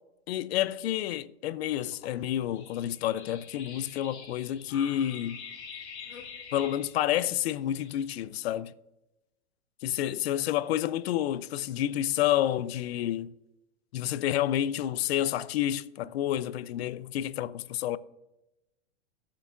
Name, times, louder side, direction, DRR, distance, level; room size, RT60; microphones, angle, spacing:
voice 1, 0.3-5.4 6.5-8.7 9.8-13.3 13.9-18.0, left 12 dB, 65° left, 0.5 m, -29 dB
sound 1, 1.8-8.3, left 6 dB, 85° left, 2.0 m, -46 dB
16.0 x 7.1 x 2.4 m
hypercardioid pair, 120°, 34 cm